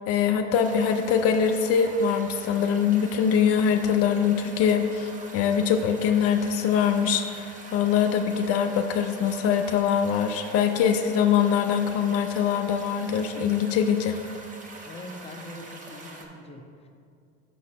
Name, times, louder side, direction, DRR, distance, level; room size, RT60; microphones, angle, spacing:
voice 1, 0.1-14.2, left 7 dB, 50° left, 6 dB, 0.5 m, -23 dB
sound 1, 0.5-16.3, right 2 dB, 25° right, 1.0 m, -44 dB
voice 2, 14.9-16.9, left 1 dB, 20° left, 3 dB, 0.8 m, -42 dB
5.8 x 4.0 x 6.2 m, 2.3 s
hypercardioid pair, 95°, 32 cm